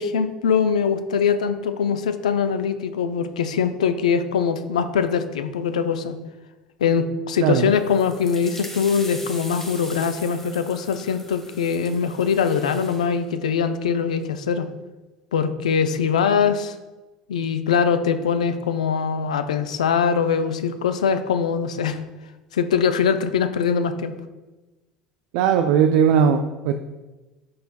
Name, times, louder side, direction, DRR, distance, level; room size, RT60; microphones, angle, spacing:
voice 1, 0.0-6.2 6.8-14.7 15.3-16.8 17.3-22.0 22.5-24.1, left 6 dB, 80° left, 10 dB, 0.5 m, -22 dB
sound 1, 7.7-13.1, left 1 dB, 10° left, 1.9 m, -40 dB
voice 2, 25.3-26.7, right 8 dB, 65° right, 7 dB, 0.5 m, -18 dB
12.0 x 5.6 x 2.3 m, 1.1 s
hypercardioid pair, 70°, 4 cm